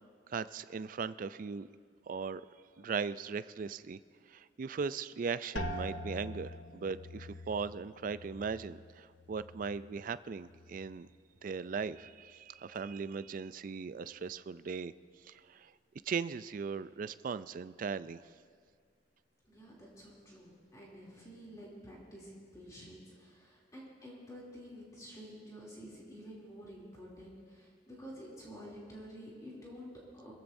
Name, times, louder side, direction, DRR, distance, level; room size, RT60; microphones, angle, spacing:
voice 1, 0.3-1.7 2.1-2.4 2.8-4.0 4.3-11.1 11.4-14.9 15.2-15.7 16.1-18.2, right 5 dB, 45° right, 15 dB, 0.3 m, -38 dB
sound 1, 5.6-11.2 11.5-12.2 12.8-13.2, left 1 dB, 75° left, 1.0 m, -45 dB
voice 2, 19.4-30.3, equal, 20° left, -5 dB, 2.9 m, -50 dB
23.0 x 15.0 x 2.6 m, 2.1 s
head